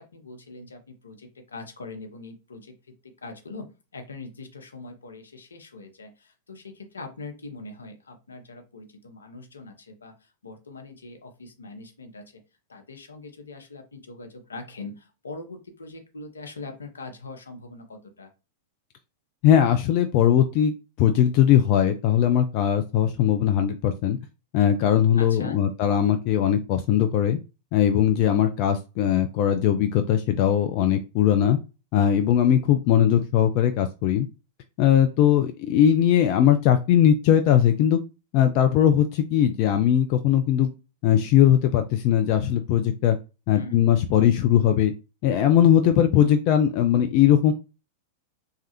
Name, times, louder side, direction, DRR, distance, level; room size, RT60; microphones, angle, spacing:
voice 1, 0.0-12.4 12.7-18.3 25.1-25.6 43.5-43.9, left 3 dB, 80° left, 5 dB, 0.7 m, -42 dB
voice 2, 19.4-24.2 24.5-27.4 27.7-31.6 31.9-34.3 34.8-38.0 38.3-40.7 41.0-43.2 43.5-44.9 45.2-47.5, left 10 dB, 45° left, 7 dB, 0.3 m, -20 dB
3.2 x 2.3 x 2.9 m, 0.29 s
figure-of-eight pair, 95°, 0 cm